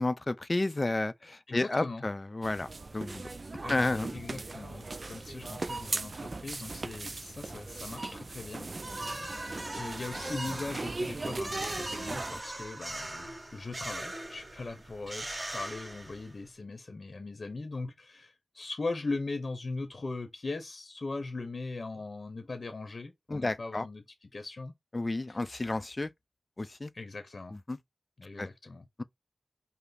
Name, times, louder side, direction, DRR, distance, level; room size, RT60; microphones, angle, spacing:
voice 1, 0.0-3.3 3.7-4.1 23.3-23.9 24.9-26.1 26.6-26.9 27.7-27.8 28.4-28.5 29.0-29.1, left 2 dB, 40° left, 0.4 m, -31 dB
voice 2, 1.5-2.0 3.6-9.1 9.7-24.7 25.3-25.4 26.9-27.5 28.2-28.8, left 3 dB, 65° left, 0.8 m, -40 dB
sound 1, 2.4-12.4, right 3 dB, 55° right, 0.4 m, -38 dB
sound 2, 8.8-16.5, right 1 dB, 35° right, 1.8 m, -40 dB
5.7 x 2.0 x 4.0 m
wide cardioid pair, 55°, 0 cm